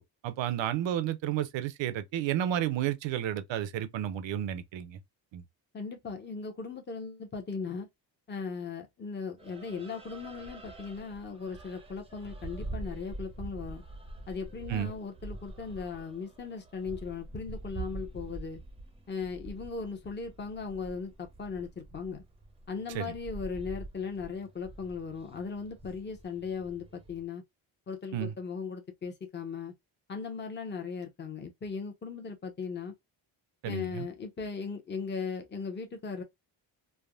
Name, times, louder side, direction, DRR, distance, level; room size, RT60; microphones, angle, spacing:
voice 1, 0.2-5.0 5.3-5.4 14.7-14.9 22.9-23.1 28.1-28.3 33.6-34.1, right 11 dB, 75° right, 0.7 m, -32 dB
voice 2, 5.7-7.9 8.3-13.8 14.3-18.6 19.1-22.2 22.7-27.4 27.9-29.7 30.1-32.9 33.7-36.2, left 5 dB, 25° left, 0.8 m, -38 dB
sound 1, 9.4-27.2, right 2 dB, 15° right, 0.6 m, -45 dB
3.4 x 2.1 x 2.3 m
cardioid pair, 95°, 45 cm